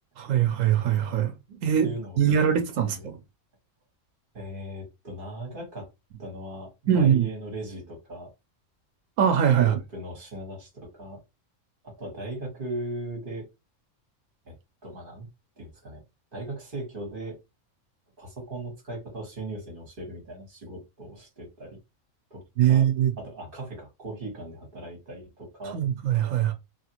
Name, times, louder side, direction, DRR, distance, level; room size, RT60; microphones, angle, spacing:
voice 1, 0.2-1.3 1.6-3.2 6.9-7.3 9.2-9.8 22.6-23.1 25.6-26.5, right 9 dB, 85° right, 1.0 m, -22 dB
voice 2, 1.5-2.3 2.8-3.1 4.3-5.9 6.2-8.3 9.6-11.2 11.8-13.4 14.4-14.5 14.8-15.3 15.6-16.0 16.3-17.4 18.2-21.8 22.3-22.8 23.2-25.8, right 1 dB, 45° right, 1.5 m, -38 dB
2.9 x 2.5 x 2.8 m
omnidirectional pair, 1.3 m